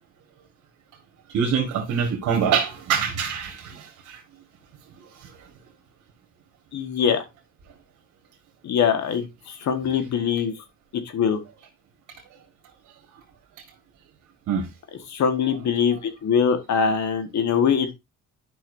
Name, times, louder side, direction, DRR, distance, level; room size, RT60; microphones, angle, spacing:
voice 1, 1.3-4.2 14.5-14.7, right 7 dB, 80° right, 1.7 m, -24 dB
voice 2, 6.7-7.2 8.6-10.5 11.1-11.4 15.1-17.9, left 7 dB, 65° left, 1.6 m, -22 dB
10.5 x 5.6 x 2.7 m
cardioid pair, 90°, 30 cm